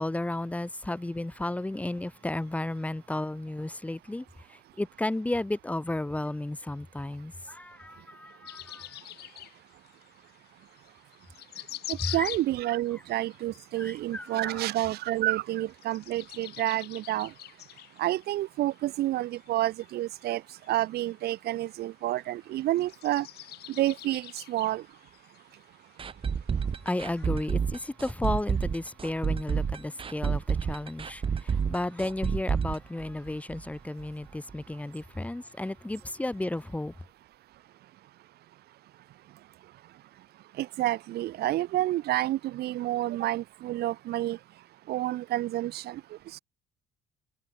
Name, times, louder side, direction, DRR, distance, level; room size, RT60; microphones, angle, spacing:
voice 1, 0.0-9.0 12.0-12.3 13.8-14.6 26.8-36.9, left 1 dB, 10° left, 1.3 m, -33 dB
sound 1, 8.5-27.2, left 15 dB, 75° left, 2.6 m, -46 dB
voice 2, 11.9-17.3 18.0-20.4 20.7-23.3 23.8-24.8 40.6-44.4 44.9-46.0, right 15 dB, 70° right, 1.3 m, -29 dB
sound 2, 26.0-33.7 34.0-34.1 34.5-34.6, right 6 dB, 30° right, 1.2 m, -29 dB
cardioid pair, 110°, 17 cm